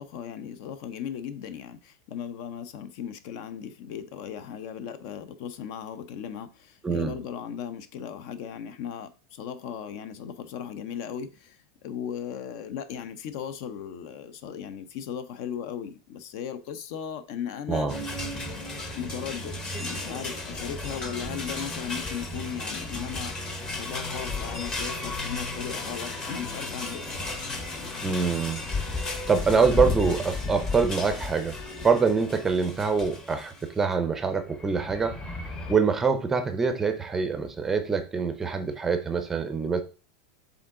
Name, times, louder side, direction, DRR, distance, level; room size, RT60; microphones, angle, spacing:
voice 1, 0.0-17.9 19.0-23.3 23.7-27.3, left 8 dB, 50° left, 0.6 m, -37 dB
voice 2, 6.8-7.1 17.7-18.0 28.0-28.6 28.9-31.5 31.8-35.2 35.7-39.8, right 5 dB, 10° right, 0.6 m, -25 dB
sound 1, 17.9-33.7 34.5-35.7, left 2 dB, 20° left, 0.9 m, -34 dB
7.0 x 3.7 x 3.7 m
supercardioid pair, 165°, 3 cm